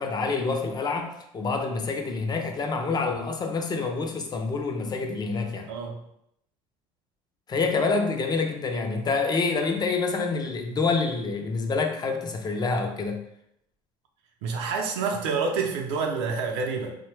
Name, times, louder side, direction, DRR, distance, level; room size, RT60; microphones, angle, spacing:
voice 1, 0.0-5.7 7.5-13.2, left 4 dB, 30° left, 4 dB, 0.4 m, -27 dB
voice 2, 5.7-6.0 14.4-16.9, right 5 dB, 80° right, 2 dB, 0.5 m, -28 dB
2.6 x 2.1 x 3.2 m, 0.77 s
supercardioid pair, 85°, 15 cm